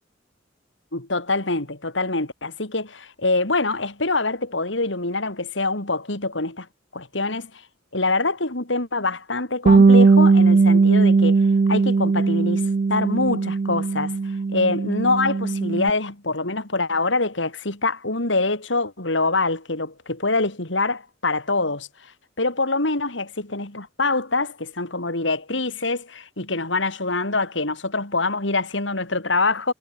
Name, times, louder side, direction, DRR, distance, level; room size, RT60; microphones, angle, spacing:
voice 1, 0.9-6.7 6.9-7.5 7.9-11.4 11.7-21.9 22.4-29.7, left 3 dB, 75° left, 4.1 m, -25 dB
Bass guitar, 9.7-15.9, right 4 dB, 40° right, 0.4 m, -18 dB
head